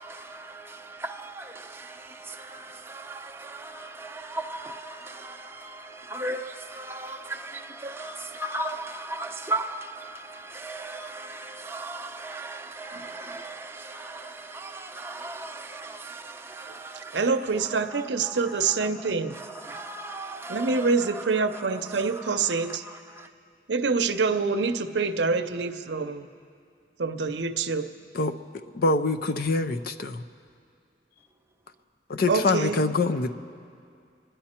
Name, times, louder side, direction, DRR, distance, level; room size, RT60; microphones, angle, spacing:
voice 1, 0.0-23.3, right 2 dB, 15° right, 0.7 m, -38 dB
voice 2, 17.1-19.3 20.5-22.8 23.7-26.3 27.0-27.9 32.3-32.8, right 4 dB, 70° right, 0.7 m, -26 dB
voice 3, 28.7-30.2 32.1-33.3, left 3 dB, 55° left, 0.6 m, -25 dB
28.5 x 10.5 x 4.4 m
head